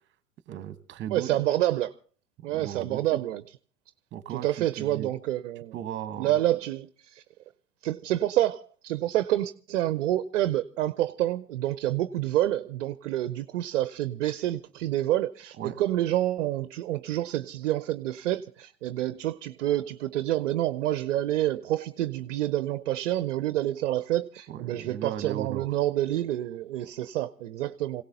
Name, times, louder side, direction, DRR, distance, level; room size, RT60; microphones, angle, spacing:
voice 1, 0.5-1.4 2.5-3.2 4.1-5.1 5.7-6.4 15.6-15.8 24.5-25.7, right 10 dB, 25° right, 13 dB, 1.2 m, -37 dB
voice 2, 1.1-1.9 2.4-3.4 4.3-5.7 6.2-7.2 7.8-28.0, right 13 dB, 50° right, 14 dB, 0.7 m, -28 dB
27.5 x 17.0 x 2.7 m, 0.41 s
figure-of-eight pair, 105°, 48 cm